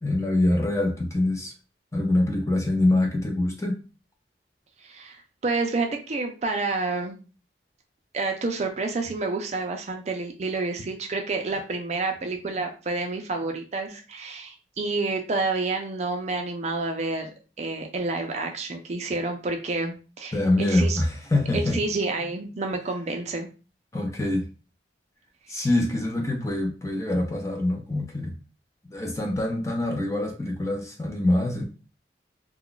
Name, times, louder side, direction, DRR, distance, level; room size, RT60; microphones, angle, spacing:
voice 1, 0.0-1.5 1.9-3.8 20.3-21.8 23.9-24.5 25.5-28.3 28.9-31.6, left 1 dB, 15° left, 1 dB, 0.6 m, -24 dB
voice 2, 4.8-7.2 8.1-17.3 17.6-21.0 21.5-23.5, right 3 dB, 40° right, 4 dB, 0.4 m, -29 dB
2.3 x 2.2 x 3.8 m, 0.34 s
head